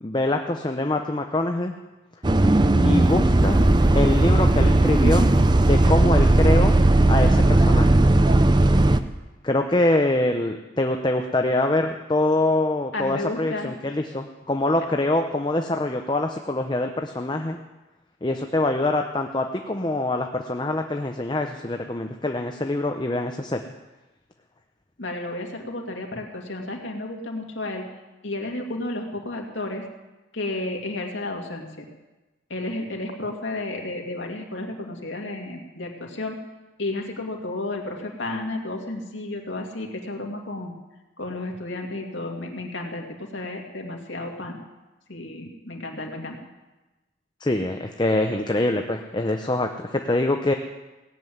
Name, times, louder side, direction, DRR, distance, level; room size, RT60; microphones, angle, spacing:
voice 1, 0.0-1.7 2.8-3.6 3.9-5.3 5.6-6.8 7.1-8.0 9.4-17.6 18.2-23.6 47.4-50.5, left 2 dB, 25° left, 4 dB, 0.7 m, -24 dB
Bus, 2.2-9.0, right 2 dB, 25° right, 0.5 m, -17 dB
voice 2, 12.9-13.8 25.0-27.9 28.2-29.8 30.3-31.9 32.5-36.4 36.8-40.7 41.2-44.6 45.1-46.4, left 2 dB, 75° left, 1 dB, 2.3 m, -32 dB
17.5 x 7.7 x 9.3 m, 1.1 s
head